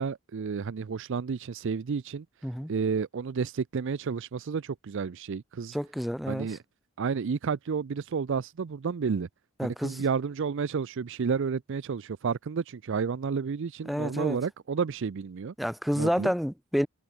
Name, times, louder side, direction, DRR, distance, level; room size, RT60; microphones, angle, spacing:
voice 1, 0.0-2.2 2.7-5.8 6.3-6.6 7.0-9.3 9.6-15.5 16.0-16.3, right 5 dB, 60° right, 0.4 m, -31 dB
voice 2, 5.7-6.6 9.6-10.0 13.9-14.4 15.6-16.9, equal, ahead, 1.8 m, -29 dB
head